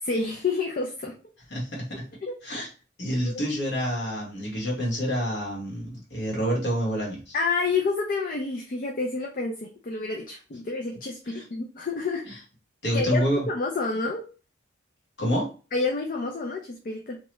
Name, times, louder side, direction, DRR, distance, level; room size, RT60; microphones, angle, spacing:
voice 1, 0.0-1.2 2.2-2.3 3.2-3.4 7.3-12.2 12.9-14.3 15.7-17.2, left 4 dB, 45° left, 1 dB, 0.4 m, -29 dB
voice 2, 1.5-1.8 2.4-2.7 3.0-7.3 11.3-11.4 12.2-12.3 12.8-13.5 15.2-15.5, equal, 60° left, -3 dB, 1.5 m, -27 dB
2.9 x 2.3 x 3.0 m, 0.34 s
head